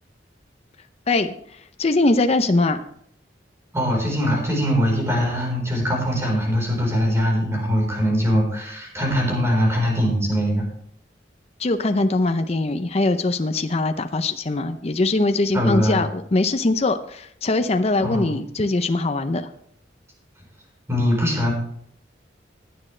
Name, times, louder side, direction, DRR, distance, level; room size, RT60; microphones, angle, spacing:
voice 1, 1.8-2.8 11.6-19.5, left 2 dB, 35° left, 8 dB, 0.6 m, -21 dB
voice 2, 3.7-10.7 15.5-16.0 18.0-18.3 20.9-21.5, equal, 15° right, -1 dB, 4.1 m, -22 dB
16.5 x 9.9 x 3.3 m, 0.67 s
head